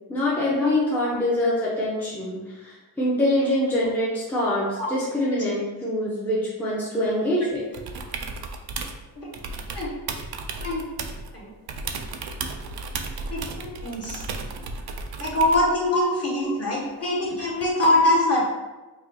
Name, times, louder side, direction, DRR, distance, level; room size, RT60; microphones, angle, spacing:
voice 1, 0.1-7.6 15.9-16.5, left 1 dB, 5° left, -7 dB, 0.7 m, -25 dB
sound 1, 7.7-9.0 9.3-11.3 11.7-15.7 17.6-17.7, right 4 dB, 60° right, 0.5 m, -34 dB
voice 2, 13.3-14.2 15.2-18.4, left 1 dB, 35° left, -5 dB, 1.3 m, -23 dB
4.8 x 2.4 x 2.7 m, 1.2 s
wide cardioid pair, 115°, 42 cm